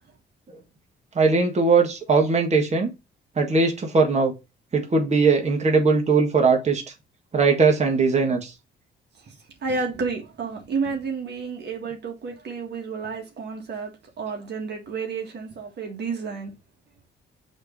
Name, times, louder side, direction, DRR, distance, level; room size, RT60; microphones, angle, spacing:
voice 1, 1.2-2.9 3.4-4.3 4.7-6.8 7.3-8.5, right 4 dB, 35° right, 1.8 m, -20 dB
voice 2, 9.2-16.5, right 4 dB, 55° right, 1.7 m, -31 dB
6.3 x 3.3 x 5.1 m
cardioid pair, 90°, 20 cm